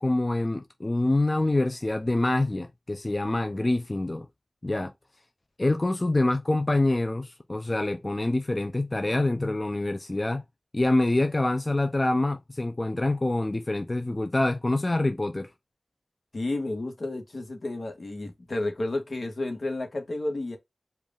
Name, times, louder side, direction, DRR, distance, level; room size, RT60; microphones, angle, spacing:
voice 1, 0.0-4.3 4.6-4.9 5.6-10.4 10.7-15.5, left 2 dB, 35° left, 0.6 m, -26 dB
voice 2, 16.3-20.6, left 2 dB, 75° left, 1.4 m, -31 dB
4.6 x 2.5 x 3.6 m
wide cardioid pair, 50°, 0 cm